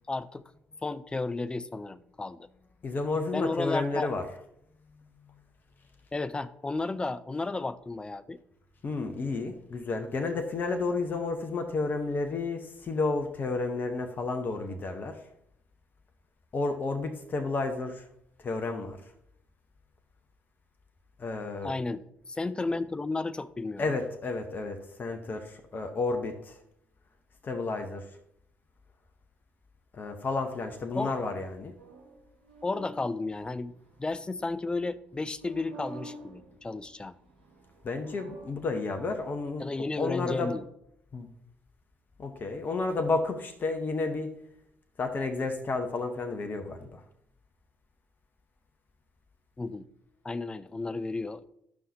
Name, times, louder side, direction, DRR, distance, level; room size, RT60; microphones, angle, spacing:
voice 1, 0.1-0.4 0.8-2.5 3.3-4.1 6.1-8.4 21.6-23.8 30.9-31.1 32.6-37.2 39.6-40.7 49.6-49.8 50.2-51.4, left 3 dB, 20° left, 13 dB, 0.5 m, -33 dB
voice 2, 2.8-4.2 8.8-15.2 16.5-18.0 18.4-19.0 21.2-21.7 23.8-26.6 27.4-28.1 29.9-31.7 37.8-39.7 40.0-40.6 41.1-41.3 42.2-44.3 45.0-47.0, left 3 dB, 40° left, 6 dB, 0.9 m, -31 dB
sound 1, 30.5-34.6 35.3-37.0 37.2-39.6, right 2 dB, 80° right, 1.0 m, -50 dB
12.5 x 5.5 x 2.8 m, 0.75 s
figure-of-eight pair, 45°, 5 cm